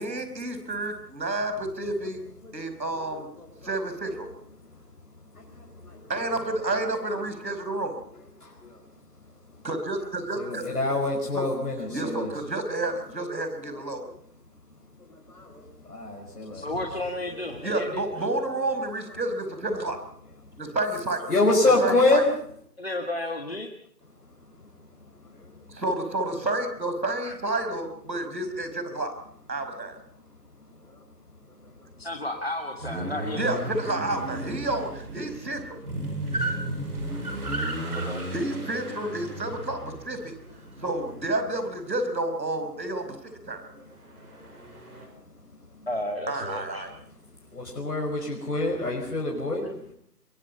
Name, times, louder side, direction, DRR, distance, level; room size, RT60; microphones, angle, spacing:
voice 1, 0.0-2.2 2.5-3.3 3.6-4.3 6.1-8.0 9.6-10.7 11.3-11.4 11.9-14.1 17.6-20.0 20.6-21.3 21.8-22.2 25.7-29.1 29.5-30.0 33.3-35.8 38.3-40.3 40.8-43.7 46.3-46.9, right 2 dB, 85° right, 8 dB, 5.4 m, -30 dB
voice 2, 10.4-12.3 13.7-13.8 15.3-16.7 21.3-22.3 37.1-37.2 37.5-37.9 47.5-49.7, left 2 dB, 60° left, -1 dB, 5.5 m, -26 dB
voice 3, 16.5-18.0 22.8-23.7 27.2-27.4 32.0-33.6 37.9-38.2 45.9-46.9, left 1 dB, 40° left, 4 dB, 1.8 m, -33 dB
sound 1, 32.8-41.7 44.1-45.1, right 1 dB, 60° right, 6.4 m, -34 dB
23.0 x 22.5 x 5.5 m, 0.65 s
figure-of-eight pair, 180°, 49 cm